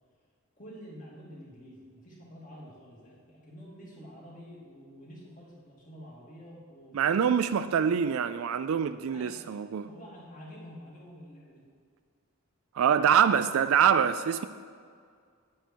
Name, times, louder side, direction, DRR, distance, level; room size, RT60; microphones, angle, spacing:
voice 1, 0.6-7.6 9.1-9.4 9.8-11.6, equal, 40° left, 2.6 m, -48 dB
voice 2, 6.9-9.9 12.8-14.4, right 7 dB, 80° right, 0.3 m, -25 dB
9.5 x 9.1 x 4.5 m
head